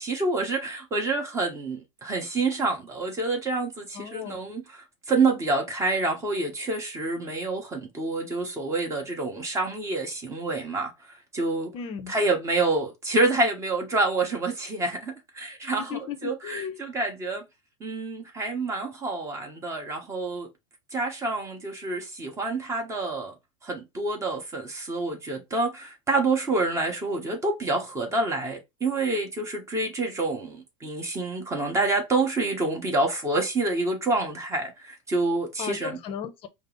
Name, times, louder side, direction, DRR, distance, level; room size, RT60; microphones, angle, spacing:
voice 1, 0.0-11.7 12.1-17.4 17.8-20.5 20.9-23.3 23.6-36.0, right 3 dB, 20° right, 1.2 m, -27 dB
voice 2, 3.9-4.4 11.7-12.1 15.8-16.8 35.6-36.5, left 8 dB, 35° left, 0.7 m, -35 dB
5.2 x 2.1 x 3.9 m
supercardioid pair, 135°, 16 cm